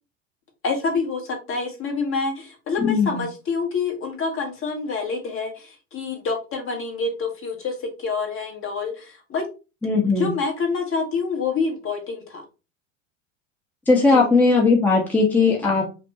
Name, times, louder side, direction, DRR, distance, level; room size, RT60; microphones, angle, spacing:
voice 1, 0.6-9.5 10.0-12.4 14.1-14.3, left 4 dB, 35° left, 3 dB, 1.4 m, -27 dB
voice 2, 2.8-3.2 9.8-10.3 13.9-15.8, left 4 dB, 5° left, -2 dB, 0.9 m, -18 dB
5.2 x 2.2 x 2.8 m, 0.30 s
hypercardioid pair, 90°, 38 cm